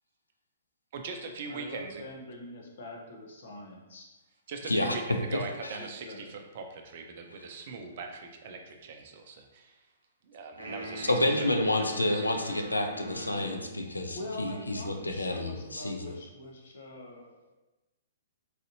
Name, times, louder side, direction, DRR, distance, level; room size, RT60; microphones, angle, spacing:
voice 1, 0.9-2.0 4.5-9.8 10.2-11.5 12.1-12.3 12.6-12.7 13.4-13.5, right 4 dB, 50° right, 4 dB, 0.5 m, -41 dB
voice 2, 1.5-4.1 5.8-6.3 14.1-17.5, left 1 dB, 60° left, 0 dB, 0.8 m, -44 dB
voice 3, 4.7-5.0 5.3-5.8 11.0-16.1, left 1 dB, 85° left, 4 dB, 0.4 m, -29 dB
sound 1, 10.6-13.9, right 1 dB, 90° right, 0.8 m, -42 dB
4.0 x 2.6 x 2.7 m, 1.1 s
figure-of-eight pair, 120°, 0 cm